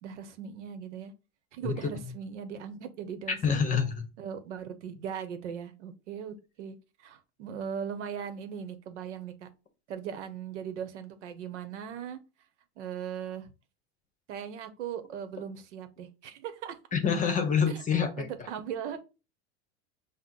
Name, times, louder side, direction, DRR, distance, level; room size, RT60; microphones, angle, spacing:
voice 1, 0.0-1.1 1.5-3.6 4.2-9.5 9.9-12.2 12.8-13.5 14.3-16.8 17.7-17.8 18.2-19.0, right 8 dB, 80° right, 0.8 m, -39 dB
voice 2, 3.4-4.0 16.9-18.3, left 6 dB, 20° left, 0.8 m, -26 dB
5.6 x 2.1 x 3.7 m
supercardioid pair, 120°, 35 cm